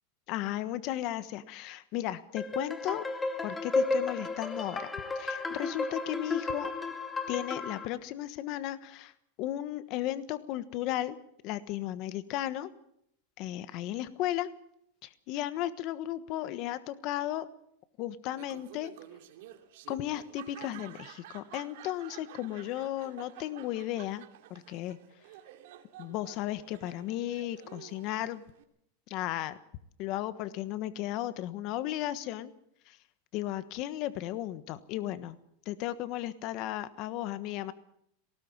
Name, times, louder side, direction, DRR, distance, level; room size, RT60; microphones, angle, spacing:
voice 1, 0.3-3.0 3.4-6.7 7.3-9.1 9.4-11.2 11.4-12.7 13.4-14.5 15.0-17.5 18.0-18.9 19.9-25.0 26.0-28.4 29.1-29.6 30.0-32.5 32.9-33.0 33.3-35.4 35.6-37.7, left 13 dB, 45° left, 13 dB, 1.3 m, -35 dB
sound 1, 2.4-7.9, left 3 dB, 10° left, 1.8 m, -33 dB
Laughter, 18.3-28.6, right 12 dB, 70° right, 2.8 m, -51 dB
19.5 x 18.5 x 7.4 m, 0.73 s
supercardioid pair, 145°, 0 cm